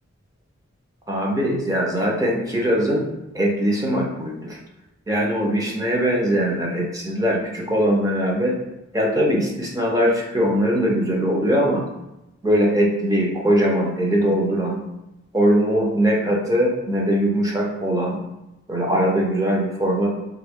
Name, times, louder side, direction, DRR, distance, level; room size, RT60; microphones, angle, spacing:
voice 1, 1.1-3.0 3.3-4.6 5.1-8.6 8.9-11.8 12.4-14.8 15.3-18.2 18.7-20.1, equal, 15° right, -2 dB, 0.6 m, -21 dB
4.3 x 2.3 x 3.5 m, 0.94 s
head